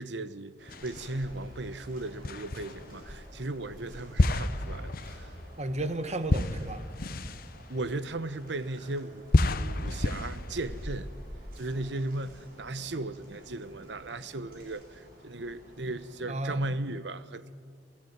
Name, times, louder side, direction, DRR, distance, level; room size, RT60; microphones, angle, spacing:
voice 1, 0.0-5.3 7.7-11.1 11.6-17.5, right 2 dB, 70° right, 1.0 m, -36 dB
sound 1, 0.6-16.2, equal, 55° right, 6.5 m, -54 dB
sound 2, 0.7-1.4 2.2-3.1 4.2-8.7 9.3-11.3, left 2 dB, 55° left, 0.9 m, -30 dB
Meow, 0.7-14.6, equal, 25° left, 3.9 m, -50 dB
voice 2, 5.6-6.8 16.3-16.7, right 1 dB, 40° right, 1.3 m, -33 dB
28.0 x 14.0 x 9.5 m
head